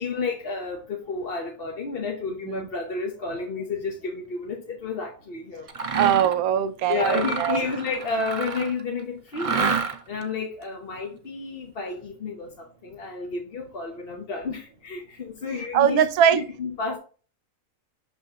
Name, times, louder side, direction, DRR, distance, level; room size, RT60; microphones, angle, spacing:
voice 1, 0.0-5.7 6.9-16.1 16.3-17.0, left 4 dB, 45° left, 0 dB, 1.1 m, -31 dB
Mechanisms, 5.7-6.4 6.9-8.8 9.3-10.2, right 5 dB, 60° right, 0.3 m, -28 dB
voice 2, 6.0-7.7 15.7-16.4, right 9 dB, 85° right, 13 dB, 1.1 m, -21 dB
6.3 x 5.6 x 2.8 m, 0.39 s
omnidirectional pair, 1.5 m